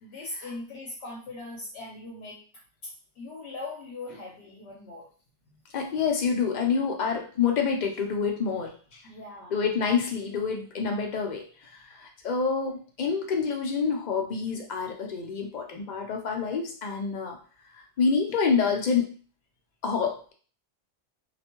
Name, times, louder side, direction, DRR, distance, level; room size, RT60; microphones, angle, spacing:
voice 1, 0.0-2.4 2.8-2.9 3.2-5.1 9.0-9.6, left 2 dB, 75° left, -3 dB, 0.9 m, -40 dB
voice 2, 5.7-9.0 9.5-17.4 17.7-19.1 19.8-20.3, left 5 dB, 55° left, 2 dB, 0.5 m, -27 dB
2.4 x 2.1 x 2.9 m, 0.41 s
omnidirectional pair, 1.1 m